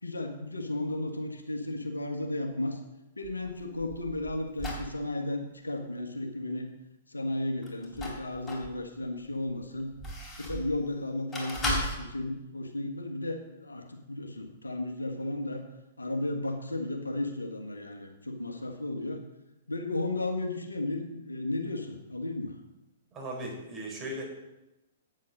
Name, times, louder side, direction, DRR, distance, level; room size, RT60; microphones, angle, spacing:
voice 1, 0.0-2.8 3.2-6.7 7.1-9.9 10.4-15.6 16.0-19.2 19.7-22.5, left 2 dB, 85° left, 4 dB, 1.5 m, -34 dB
sound 1, 3.2-4.9 7.6-8.7 9.3-10.7 11.3-12.0, left 1 dB, 15° left, 3.8 m, -35 dB
voice 2, 23.1-24.2, right 1 dB, 25° right, -1 dB, 4.4 m, -37 dB
8.8 x 8.3 x 6.5 m, 0.97 s
figure-of-eight pair, 110°, 0 cm